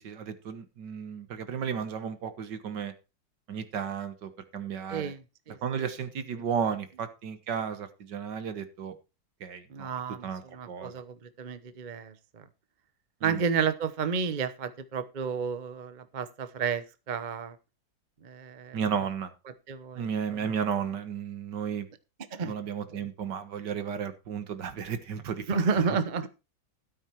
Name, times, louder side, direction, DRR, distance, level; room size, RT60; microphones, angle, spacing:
voice 1, 0.0-2.9 3.5-5.1 5.6-8.9 9.4-9.9 10.2-10.9 13.2-13.4 18.7-19.3 20.0-21.9 22.4-25.5, right 7 dB, 65° right, 11 dB, 2.0 m, -33 dB
voice 2, 4.9-5.9 6.3-6.4 9.7-12.5 13.2-17.6 18.2-18.8 19.7-20.1 20.4-20.5 22.3-22.5 22.9-23.1 25.5-26.3, right 6 dB, 35° right, 12 dB, 0.7 m, -31 dB
13.0 x 8.9 x 4.5 m, 0.29 s
omnidirectional pair, 2.0 m